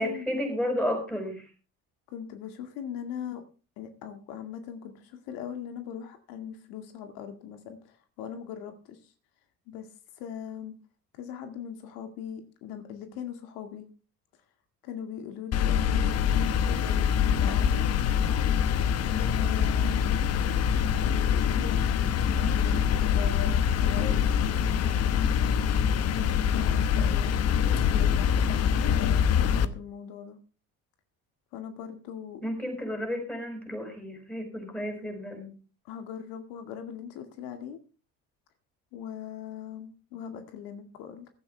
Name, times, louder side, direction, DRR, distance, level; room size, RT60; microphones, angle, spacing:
voice 1, 0.0-1.5 32.4-35.5, left 1 dB, 5° left, 3 dB, 5.7 m, -32 dB
voice 2, 2.1-3.4 3.8-9.1 9.7-9.9 10.1-10.8 11.1-13.9 14.8-17.9 19.0-20.1 20.7-25.0 26.1-27.3 27.7-29.1 29.4-30.4 31.5-32.4 35.8-37.8 38.9-41.3, left 8 dB, 85° left, 7 dB, 2.1 m, -40 dB
sound 1, 15.5-29.7, left 8 dB, 45° left, 1.0 m, -24 dB
16.0 x 12.5 x 3.4 m, 0.35 s
cardioid pair, 140°, 34 cm